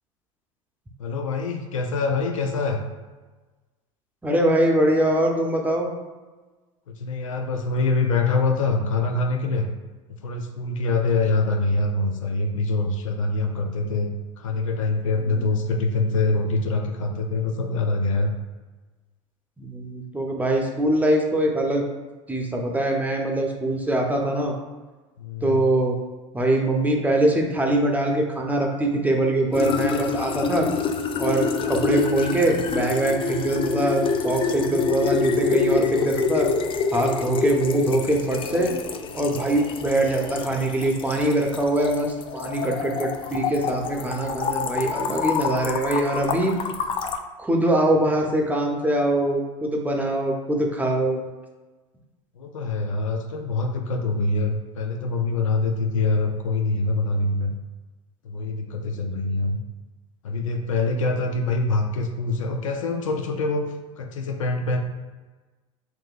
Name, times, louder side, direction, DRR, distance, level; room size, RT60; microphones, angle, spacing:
voice 1, 1.0-2.8 6.9-9.7 10.2-18.3 25.2-25.6 52.4-57.5 58.2-59.6 60.2-63.7 64.0-64.8, left 3 dB, 90° left, 4 dB, 0.5 m, -24 dB
voice 2, 4.2-5.9 15.3-15.5 19.6-21.8 22.3-24.5 25.4-26.0 26.3-30.7 31.2-36.5 36.9-38.7 39.1-46.5 47.4-51.2, right 1 dB, 10° right, 1 dB, 0.8 m, -23 dB
sound 1, 29.5-47.2, left 5 dB, 35° left, 0.4 m, -27 dB
5.8 x 2.6 x 2.5 m, 1.3 s
hypercardioid pair, 80°, 16 cm